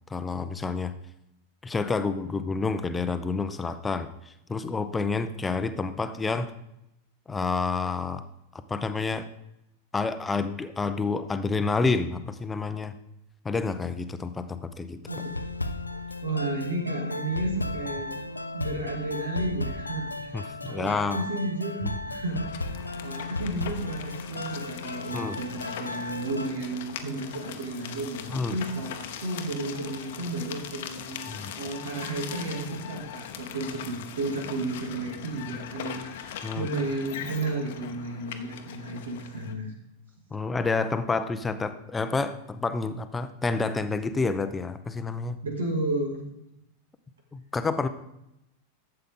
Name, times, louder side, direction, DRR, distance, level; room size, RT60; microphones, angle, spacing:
voice 1, 0.1-0.9 1.6-6.5 7.3-8.2 8.7-9.3 9.9-12.9 13.4-15.0 20.3-21.2 21.8-22.0 25.1-25.4 28.3-28.6 31.3-31.5 36.4-36.7 40.3-45.4 47.3-47.9, left 4 dB, 15° left, 11 dB, 0.7 m, -29 dB
sound 1, 15.1-26.5, left 2 dB, 80° left, 0.6 m, -35 dB
voice 2, 16.2-18.2 18.5-22.7 23.0-39.7 45.4-46.2, right 2 dB, 70° right, 1 dB, 2.5 m, -32 dB
sound 2, 22.3-39.5, left 9 dB, 55° left, 0.9 m, -41 dB
12.0 x 7.9 x 3.8 m, 0.85 s
figure-of-eight pair, 90°, 0 cm